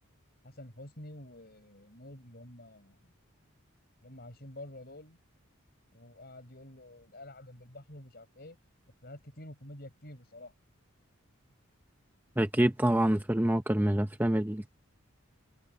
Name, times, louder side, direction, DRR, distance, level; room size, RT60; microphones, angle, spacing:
voice 1, 0.4-3.1 4.0-5.2 5.9-8.6 9.0-10.5, left 1 dB, 45° left, 5.4 m, -49 dB
voice 2, 12.4-14.7, right 1 dB, 10° right, 0.7 m, -26 dB
head